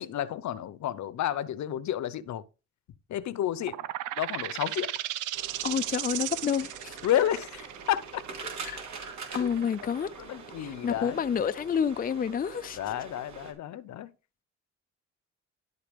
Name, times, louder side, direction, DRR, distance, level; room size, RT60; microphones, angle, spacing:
voice 1, 0.0-2.4 3.1-3.9 4.2-4.9 7.0-8.2 9.4-9.5 9.8-11.2 12.8-14.1, left 11 dB, 65° left, 0.9 m, -31 dB
sound 1, 3.6-11.0, right 14 dB, 85° right, 0.6 m, -36 dB
sound 2, 5.3-13.5, right 4 dB, 65° right, 3.3 m, -44 dB
voice 2, 5.6-7.0 8.6-8.8 9.3-10.1 10.6-12.8, left 7 dB, 30° left, 0.5 m, -29 dB
12.0 x 4.1 x 5.2 m
cardioid pair, 90°, 30 cm